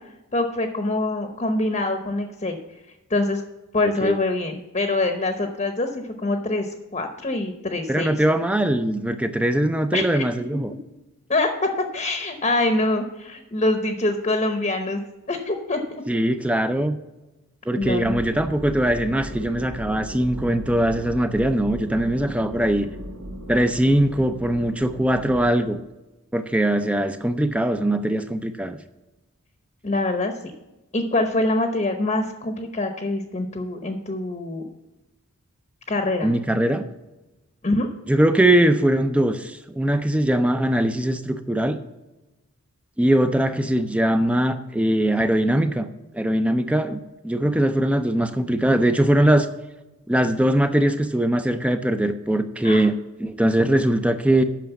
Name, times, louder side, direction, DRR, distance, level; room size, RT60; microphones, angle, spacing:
voice 1, 0.3-2.6 3.1-3.4 3.7-8.2 9.9-10.2 11.3-11.5 11.9-15.0 15.3-16.0 17.8-18.2 29.8-30.3 30.9-34.6 35.9-36.3 37.6-37.9 52.6-52.8, left 2 dB, 30° left, 5 dB, 0.8 m, -24 dB
voice 2, 7.9-10.7 16.1-17.0 17.7-22.9 23.5-25.8 26.3-28.8 36.2-36.8 38.1-41.8 43.0-45.9 46.1-47.0 47.2-49.5 50.1-54.4, right 1 dB, 5° right, 9 dB, 0.4 m, -21 dB
sound 1, 17.8-25.6, equal, 75° right, 1.3 m, -37 dB
9.2 x 6.3 x 7.0 m, 1.0 s
head